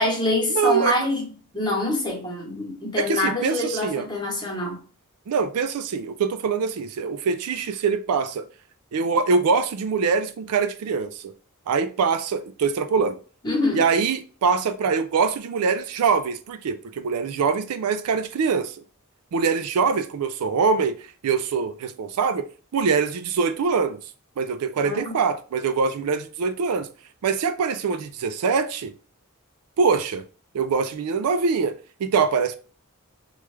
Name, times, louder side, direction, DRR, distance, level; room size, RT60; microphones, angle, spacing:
voice 1, 0.0-4.8 13.4-13.8 24.8-25.1, left 1 dB, 20° left, 1.0 m, -25 dB
voice 2, 0.5-1.0 3.0-4.1 5.3-8.5 8.9-11.3 11.7-13.2 13.7-18.8 19.3-22.5 22.7-24.0 24.4-26.9 27.2-28.9 29.8-30.2 30.5-32.6, right 5 dB, 75° right, 0.4 m, -23 dB
3.1 x 2.3 x 3.2 m
head